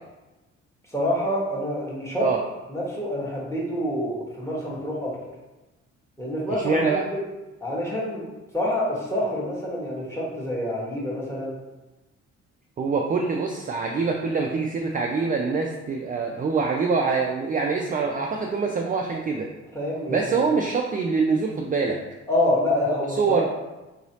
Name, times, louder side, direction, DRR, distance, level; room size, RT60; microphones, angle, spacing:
voice 1, 0.9-2.3 2.7-5.1 6.2-7.2 7.6-8.2 8.5-11.5 19.7-20.4 22.3-23.4, left 1 dB, 10° left, -5 dB, 1.3 m, -27 dB
voice 2, 6.5-7.0 12.8-19.5 20.1-22.0 23.2-23.4, right 4 dB, 30° right, 1 dB, 0.4 m, -24 dB
3.9 x 3.0 x 2.8 m, 1.1 s
cardioid pair, 90°, 30 cm